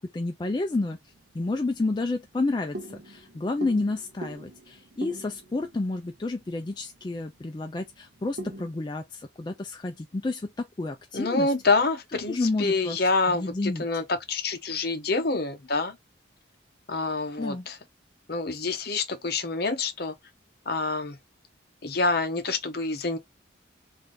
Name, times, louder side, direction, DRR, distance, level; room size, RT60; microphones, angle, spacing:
voice 1, 0.1-1.0 1.3-11.5 12.3-13.0 13.3-13.8 17.4-17.6, left 2 dB, 25° left, 0.3 m, -30 dB
sound 1, 0.8-8.7, right 1 dB, 55° right, 0.6 m, -44 dB
voice 2, 11.1-16.0 16.9-17.8 18.3-20.1 20.6-21.2 21.8-23.2, left 3 dB, 50° left, 0.8 m, -27 dB
3.3 x 2.6 x 3.7 m
head